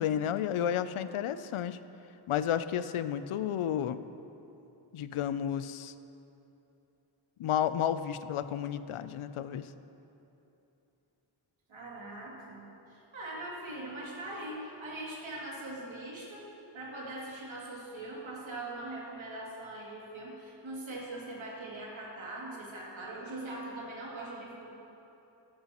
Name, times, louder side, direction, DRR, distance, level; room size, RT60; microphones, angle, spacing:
voice 1, 0.0-1.8 2.3-4.0 4.9-5.9 7.4-9.7, left 9 dB, 85° left, 13 dB, 0.5 m, -31 dB
voice 2, 11.7-16.5 16.7-24.7, right 2 dB, 70° right, -5 dB, 2.5 m, -41 dB
14.0 x 11.5 x 3.0 m, 2.9 s
wide cardioid pair, 170°, 49 cm